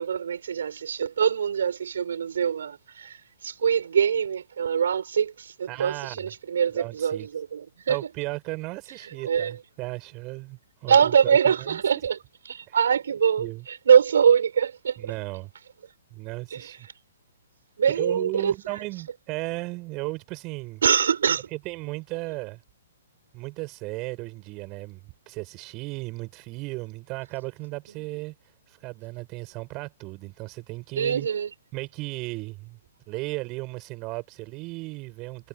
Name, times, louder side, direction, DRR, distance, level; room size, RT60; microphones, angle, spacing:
voice 1, 0.0-8.0 9.2-9.5 10.9-12.2 12.5-15.1 16.5-16.7 17.8-18.8 20.8-21.5 31.0-31.5, right 7 dB, 60° right, 6.3 m, -23 dB
voice 2, 5.7-6.3 6.7-7.3 7.9-11.8 12.7-12.8 13.4-13.6 15.0-15.5 16.1-16.9 17.9-20.8 21.5-22.6 23.3-28.3 28.7-31.3 31.7-32.8 33.1-35.5, right 23 dB, 30° right, 7.3 m, -35 dB
figure-of-eight pair, 120°, 0 cm